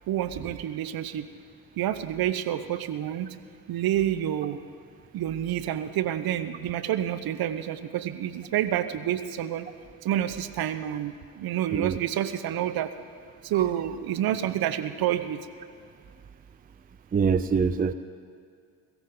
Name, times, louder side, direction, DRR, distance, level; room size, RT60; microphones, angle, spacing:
voice 1, 0.1-1.2 1.8-3.4 3.7-4.6 5.1-9.7 10.0-12.9 13.4-15.4, right 11 dB, 50° right, 11 dB, 0.9 m, -28 dB
voice 2, 17.1-17.9, right 5 dB, 20° right, 13 dB, 0.5 m, -24 dB
22.5 x 14.0 x 3.9 m, 2.3 s
hypercardioid pair, 50°, 45 cm